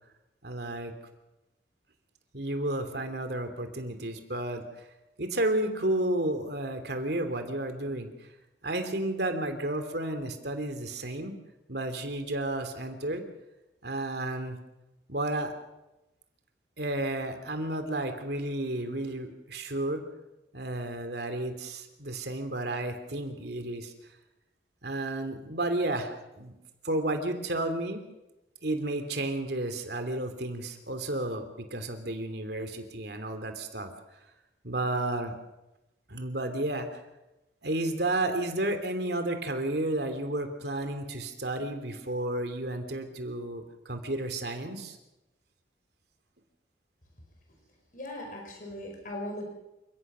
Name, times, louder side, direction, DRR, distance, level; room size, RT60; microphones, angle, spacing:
voice 1, 0.4-0.9 2.3-4.8 5.2-8.3 8.6-11.3 11.7-13.2 13.8-14.6 15.1-15.5 16.8-20.0 20.5-24.1 24.8-26.5 26.8-28.0 28.6-33.9 34.6-35.3 36.1-37.0 37.6-45.0, right 1 dB, 60° right, 7 dB, 2.9 m, -32 dB
voice 2, 47.9-49.4, left 1 dB, 45° left, 2 dB, 5.0 m, -38 dB
28.5 x 16.5 x 6.2 m, 0.98 s
head